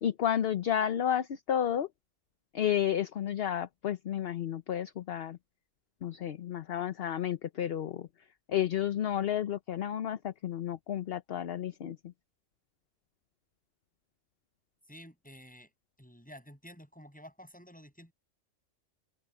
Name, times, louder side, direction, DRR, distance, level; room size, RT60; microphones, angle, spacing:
voice 1, 0.0-1.9 2.5-5.4 6.0-8.1 8.5-12.0, left 10 dB, 55° left, 0.9 m, -31 dB
voice 2, 14.9-15.7 16.0-18.1, equal, 5° left, 7.8 m, -51 dB
open air
omnidirectional pair, 1.3 m